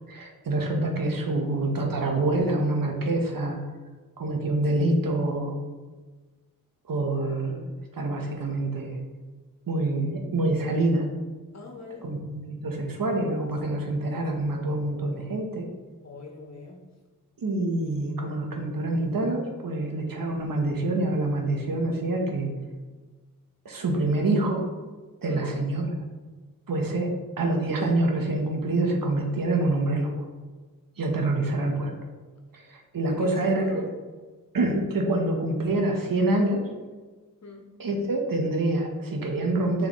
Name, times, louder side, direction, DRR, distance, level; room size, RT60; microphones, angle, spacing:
voice 1, 0.1-3.6 4.2-5.6 6.9-9.0 9.7-11.0 12.0-15.6 17.4-22.5 23.6-24.6 25.2-26.0 26.7-27.1 27.4-30.1 31.0-31.9 32.5-33.8 34.5-36.6 37.8-39.9, right 2 dB, 80° right, 2 dB, 1.2 m, -26 dB
voice 2, 11.5-12.1 16.0-16.8 25.3-25.6 33.0-33.9 37.4-37.7, left 2 dB, 50° left, 2 dB, 1.4 m, -39 dB
7.3 x 4.8 x 3.1 m, 1.4 s
cardioid pair, 60°, 33 cm